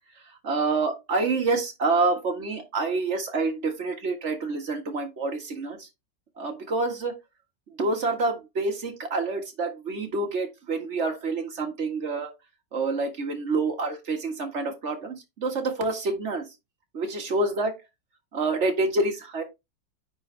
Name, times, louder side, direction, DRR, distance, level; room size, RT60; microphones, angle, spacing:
voice 1, 0.4-5.9 6.4-7.1 7.8-12.3 12.7-16.4 16.9-17.7 18.3-19.4, right 3 dB, 40° right, 1.8 m, -27 dB
9.4 x 4.2 x 3.3 m
omnidirectional pair, 2.0 m